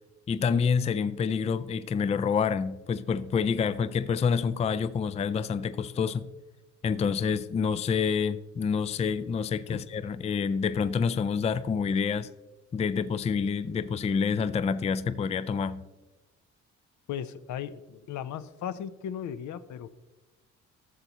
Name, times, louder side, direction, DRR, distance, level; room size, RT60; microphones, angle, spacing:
voice 1, 0.3-6.3 6.8-12.3 12.7-15.8, left 6 dB, 20° left, 0.3 m, -27 dB
voice 2, 17.1-20.0, left 9 dB, 70° left, 0.6 m, -37 dB
13.0 x 6.9 x 2.9 m
cardioid pair, 90°, 30 cm